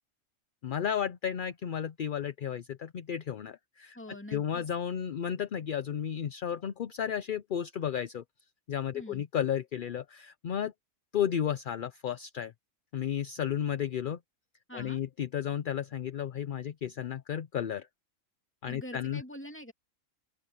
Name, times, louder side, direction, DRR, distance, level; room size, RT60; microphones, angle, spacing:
voice 1, 0.6-4.0 4.3-8.2 8.7-10.7 11.1-12.5 12.9-14.2 14.7-17.9 18.6-19.2, left 9 dB, 55° left, 0.6 m, -33 dB
voice 2, 3.9-4.6 8.9-9.2 14.7-15.0 18.6-19.7, equal, 10° left, 2.4 m, -44 dB
open air
omnidirectional pair, 1.4 m